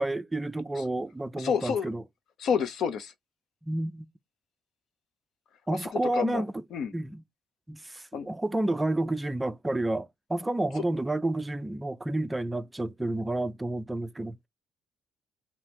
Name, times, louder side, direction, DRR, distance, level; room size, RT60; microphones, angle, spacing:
voice 1, 0.0-2.0 3.6-4.1 5.7-6.6 6.9-7.2 7.7-14.4, right 2 dB, 10° right, 0.4 m, -30 dB
voice 2, 1.4-1.9 2.4-3.1 5.7-6.4 6.7-6.9 8.1-8.3 10.8-10.9, left 7 dB, 60° left, 0.6 m, -29 dB
2.9 x 2.7 x 3.4 m
cardioid pair, 110°, 0 cm